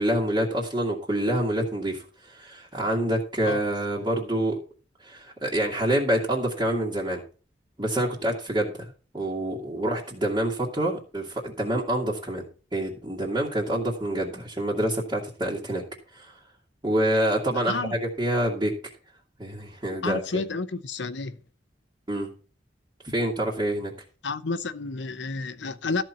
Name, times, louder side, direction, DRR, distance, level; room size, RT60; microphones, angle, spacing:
voice 1, 0.0-4.6 5.0-7.2 7.8-8.7 9.1-12.4 12.7-15.8 16.1-16.3 16.8-18.7 19.4-20.4 22.1-22.3 23.0-23.9, right 1 dB, 25° right, 2.0 m, -27 dB
voice 2, 17.6-17.9 20.0-21.4 24.2-26.0, left 3 dB, 90° left, 0.8 m, -30 dB
13.5 x 4.5 x 7.0 m
head